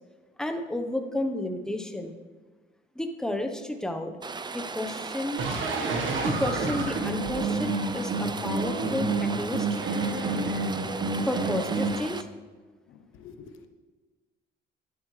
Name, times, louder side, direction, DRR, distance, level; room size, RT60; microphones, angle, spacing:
voice 1, 0.4-2.1 2.9-4.1 4.5-5.4 6.2-9.7 11.2-12.3, left 1 dB, 5° left, 5 dB, 1.0 m, -31 dB
Rain, 4.2-12.2, right 4 dB, 20° right, 0.5 m, -37 dB
sound 1, 5.4-11.9, right 3 dB, 75° right, 1.5 m, -29 dB
voice 2, 12.9-13.7, left 5 dB, 90° left, 7 dB, 1.0 m, -48 dB
12.0 x 10.0 x 3.3 m, 1.3 s
cardioid pair, 90°, 20 cm